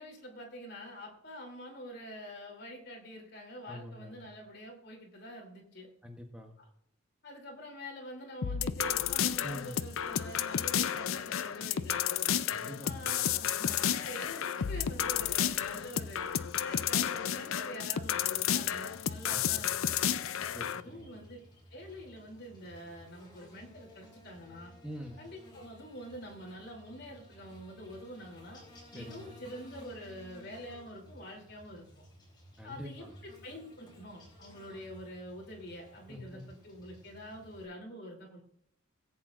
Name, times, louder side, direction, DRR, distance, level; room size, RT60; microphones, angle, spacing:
voice 1, 0.0-5.9 6.6-6.7 7.2-12.3 12.8-20.0 20.7-21.4 21.7-24.7 25.2-28.6 28.9-31.8 32.6-38.4, equal, 50° left, 0 dB, 3.1 m, -46 dB
voice 2, 3.7-4.3 6.0-6.5 9.4-9.8 12.5-13.3 19.3-19.7 20.5-21.2 24.8-25.2 28.9-29.4 32.6-33.2 36.1-36.4, equal, 5° right, 1 dB, 1.0 m, -45 dB
sound 1, 8.4-20.8, left 9 dB, 75° left, 0.5 m, -32 dB
Buzz, 18.1-37.6, equal, 20° left, 3.6 m, -56 dB
18.5 x 8.4 x 2.5 m, 0.73 s
head